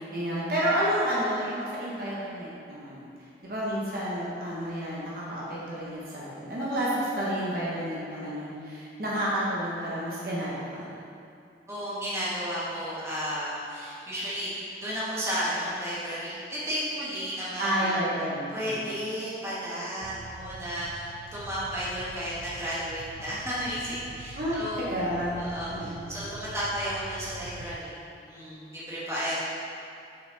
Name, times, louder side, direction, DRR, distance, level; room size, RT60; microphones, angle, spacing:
voice 1, 0.0-3.1 3.4-10.9 17.6-18.8 24.3-25.4 25.7-26.1, equal, 55° right, -7 dB, 1.1 m, -30 dB
voice 2, 11.7-18.0 18.5-24.8 25.4-29.3, equal, 15° right, -10 dB, 1.4 m, -33 dB
sound 1, 20.0-27.8, right 3 dB, 85° right, 0.4 m, -45 dB
6.6 x 4.2 x 4.0 m, 2.5 s
head